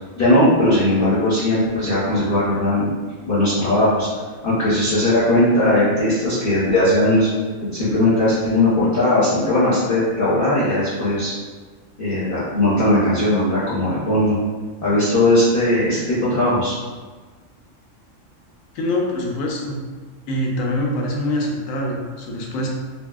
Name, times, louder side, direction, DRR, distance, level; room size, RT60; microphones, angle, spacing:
voice 1, 0.2-2.8 3.3-4.1 4.4-7.3 7.7-11.3 12.0-14.4 14.8-16.7, left 1 dB, 55° left, -10 dB, 0.7 m, -18 dB
voice 2, 18.7-19.8 20.3-22.7, left 1 dB, 85° left, -1 dB, 1.0 m, -24 dB
2.7 x 2.6 x 2.3 m, 1.4 s
omnidirectional pair, 1.4 m